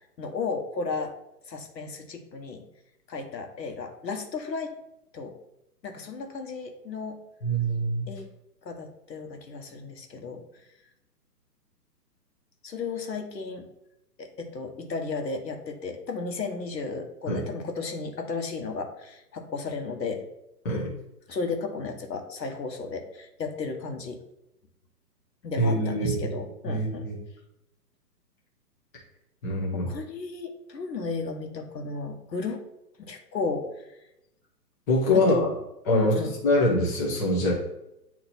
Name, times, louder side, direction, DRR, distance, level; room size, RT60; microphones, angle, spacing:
voice 1, 0.2-1.2 1.5-2.6 3.1-4.7 5.1-5.4 5.8-7.2 8.1-8.3 8.6-10.4 12.6-13.7 14.2-20.3 21.3-24.2 25.4-27.1 29.7-32.6 33.0-33.7 35.1-35.5 35.9-36.3, left 4 dB, 85° left, 5 dB, 1.3 m, -34 dB
voice 2, 7.4-8.1 17.3-17.4 20.6-20.9 25.6-26.4 26.7-27.2 29.4-29.9 34.9-35.5 35.9-37.5, left 1 dB, 10° left, -5 dB, 0.6 m, -24 dB
8.4 x 2.9 x 4.0 m, 0.88 s
hypercardioid pair, 150°, 49 cm